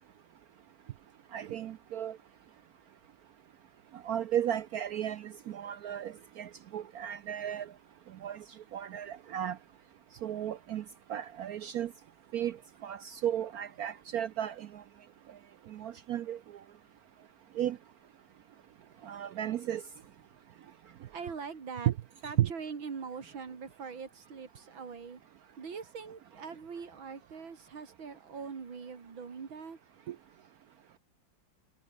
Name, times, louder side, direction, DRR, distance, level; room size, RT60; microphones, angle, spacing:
voice 1, 1.3-2.2 4.0-7.7 8.2-8.4 8.7-9.6 10.2-10.8 11.1-11.9 12.3-12.6 12.8-14.8 15.7-16.4 17.6-17.8 19.0-19.8 21.9-22.0 22.4-22.5 30.1-30.2, right 11 dB, 70° right, 0.9 m, -34 dB
voice 2, 20.9-21.9 22.2-25.2 25.6-30.1, right 5 dB, 85° right, 3.4 m, -43 dB
omnidirectional pair, 2.1 m